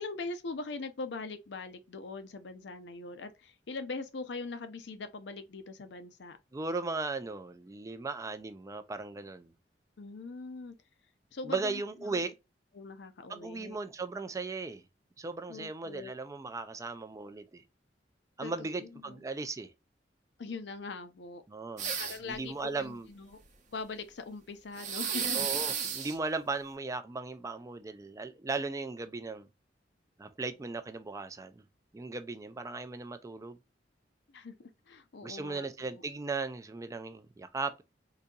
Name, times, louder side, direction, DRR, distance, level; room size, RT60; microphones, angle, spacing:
voice 1, 0.0-6.4 10.0-10.7 11.3-12.2 12.7-13.8 15.5-16.1 18.4-19.2 20.4-21.4 22.0-23.4 23.7-25.4 34.3-36.0, left 3 dB, 75° left, 0.6 m, -42 dB
voice 2, 6.5-9.5 11.4-12.3 13.3-14.8 15.2-17.6 18.4-19.7 21.5-22.0 22.2-23.1 25.3-29.5 30.2-31.6 31.9-33.6 35.2-37.8, right 3 dB, 20° right, 0.3 m, -37 dB
sound 1, 21.8-22.4 24.8-26.1, right 7 dB, 45° right, 0.7 m, -33 dB
3.9 x 2.7 x 2.3 m
head